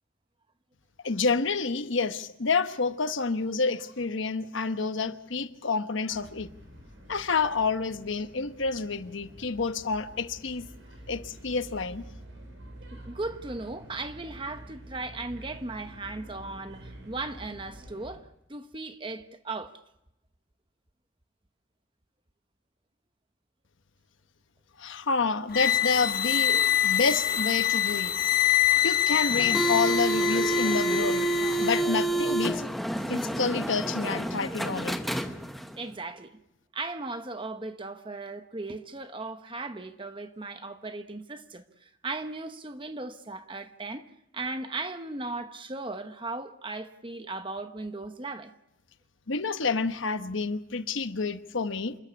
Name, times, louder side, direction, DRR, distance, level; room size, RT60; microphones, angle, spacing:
voice 1, 1.0-6.5 7.1-10.7 11.1-12.0 24.8-28.1 28.8-31.3 31.6-32.6 33.1-35.0 49.3-52.0, left 4 dB, 70° left, 1.1 m, -29 dB
sound 1, 6.1-18.2, right 1 dB, 70° right, 5.4 m, -48 dB
voice 2, 12.9-19.7 35.8-36.4 36.7-44.1 44.3-48.5, right 3 dB, 25° right, 0.9 m, -37 dB
sound 2, 25.5-31.9, left 12 dB, 45° left, 0.7 m, -25 dB
sound 3, 29.3-35.8, right 2 dB, ahead, 0.9 m, -28 dB
28.0 x 14.0 x 8.4 m
head